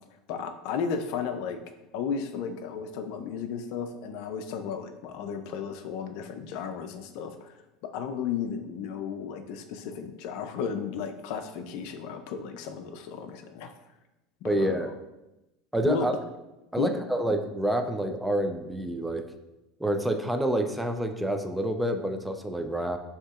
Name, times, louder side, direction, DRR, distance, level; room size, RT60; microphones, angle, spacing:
voice 1, 0.3-1.6 1.9-7.5 7.9-13.7 14.4-14.9 15.9-16.1 16.8-16.9, left 6 dB, 65° left, 7 dB, 0.4 m, -34 dB
voice 2, 14.4-14.9 15.7-16.1 16.7-19.2 19.8-23.0, right 1 dB, 5° right, 6 dB, 0.4 m, -28 dB
6.3 x 2.8 x 2.4 m, 0.98 s
hypercardioid pair, 90°, 0 cm